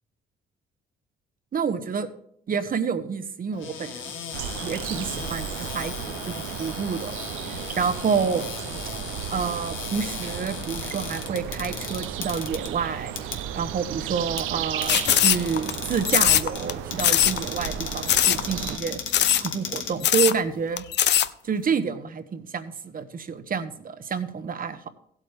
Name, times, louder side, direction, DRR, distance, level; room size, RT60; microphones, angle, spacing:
voice 1, 1.5-2.1 2.5-4.0 4.6-7.2 7.4-8.5 9.3-13.1 13.5-19.0 19.4-20.8 21.4-24.9, right 6 dB, 45° right, 11 dB, 1.1 m, -28 dB
Cupboard open or close, 3.5-20.6, left 7 dB, 80° left, 1.6 m, -37 dB
sound 1, 4.3-18.8, right 11 dB, 90° right, 0.5 m, -34 dB
sound 2, 14.9-15.7 16.1-16.7 17.0-17.4 17.6-17.7 18.1-18.4 18.7-18.8 19.1-19.5 19.8-19.9 20.0-20.4 20.8-21.3, left 11 dB, 60° left, 0.5 m, -20 dB
15.5 x 8.3 x 3.5 m, 0.69 s
cardioid pair, 90°, 20 cm